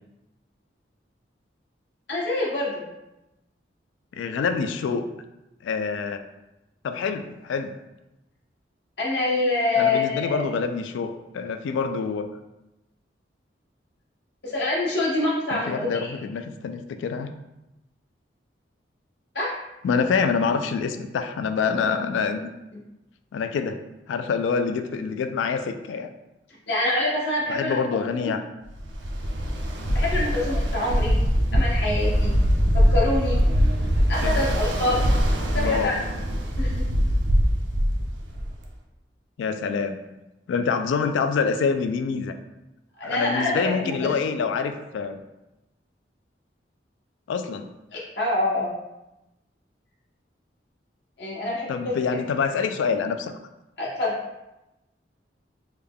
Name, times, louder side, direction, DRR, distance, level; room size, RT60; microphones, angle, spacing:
voice 1, 2.1-2.8 9.0-10.4 14.4-16.0 19.3-19.6 26.7-27.8 28.1-28.3 29.9-31.2 31.5-32.3 32.7-33.4 34.1-35.0 35.5-36.0 36.6-36.8 43.0-44.1 47.9-48.7 51.2-51.9 53.8-54.2, left 2 dB, 70° left, -5 dB, 1.0 m, -25 dB
voice 2, 4.1-5.0 5.6-6.2 6.8-7.7 9.8-12.3 15.5-17.3 19.8-22.5 23.3-23.8 24.1-26.1 27.5-28.4 31.5-31.6 34.2-34.4 35.5-36.0 39.4-40.0 40.5-42.3 43.0-45.2 47.3-47.7 51.7-53.3, left 5 dB, 90° left, 8 dB, 0.3 m, -26 dB
Ocean, 28.8-38.6, equal, 80° right, 0.5 m, -22 dB
3.4 x 2.2 x 3.5 m, 0.96 s
head